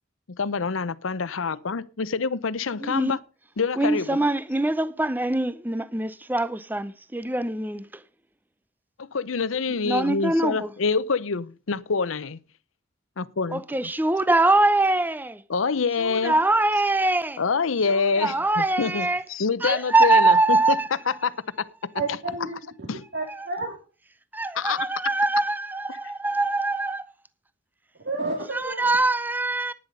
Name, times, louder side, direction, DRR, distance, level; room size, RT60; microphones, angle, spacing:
voice 1, 0.3-3.2 3.6-4.2 9.0-12.4 13.2-13.9 15.5-16.3 17.4-20.8 21.1-21.4 22.9-23.0 24.5-24.9 25.9-26.0, left 5 dB, 90° left, 0.7 m, -26 dB
voice 2, 2.8-3.1 3.8-7.8 9.8-10.7 13.5-15.4 16.1-17.4 18.0-19.2 19.6-20.9 24.3-27.1 28.5-29.7, right 2 dB, 10° right, 0.5 m, -23 dB
voice 3, 21.9-22.9 23.1-23.7 28.0-28.9, right 3 dB, 60° right, 2.8 m, -31 dB
11.0 x 9.9 x 5.2 m
head